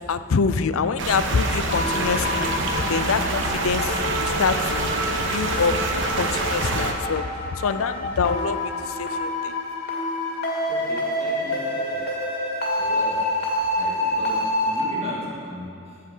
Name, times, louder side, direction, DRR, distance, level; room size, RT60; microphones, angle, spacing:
voice 1, 0.1-2.5 2.9-3.9 4.2-4.9 5.3-5.7 6.1-7.3 7.6-8.7 9.0-9.5, left 5 dB, 80° left, 12 dB, 0.5 m, -25 dB
sound 1, 1.0-6.9, right 2 dB, 60° right, 1.2 m, -26 dB
sound 2, 1.7-14.8, left 1 dB, 45° left, 2.2 m, -27 dB
voice 2, 10.7-12.1 12.8-13.3 13.7-16.0, equal, 30° right, -4 dB, 2.2 m, -37 dB
15.5 x 7.8 x 5.5 m, 2.4 s
head